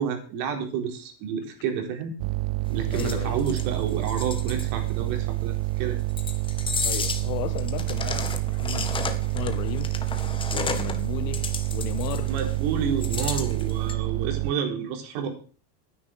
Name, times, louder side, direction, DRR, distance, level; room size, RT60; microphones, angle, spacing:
voice 1, 0.0-2.2 2.7-6.0 12.3-15.3, right 6 dB, 60° right, 4.1 m, -30 dB
sound 1, 2.2-14.5, right 23 dB, 85° right, 0.7 m, -28 dB
voice 2, 2.9-3.4 6.8-10.0 10.5-12.3, left 15 dB, 85° left, 1.5 m, -35 dB
sound 2, 2.9-4.7 6.1-7.3 7.6-11.1 11.3-12.5 13.0-13.9, left 5 dB, 10° left, 0.9 m, -33 dB
12.0 x 9.9 x 6.4 m
cardioid pair, 175°, 49 cm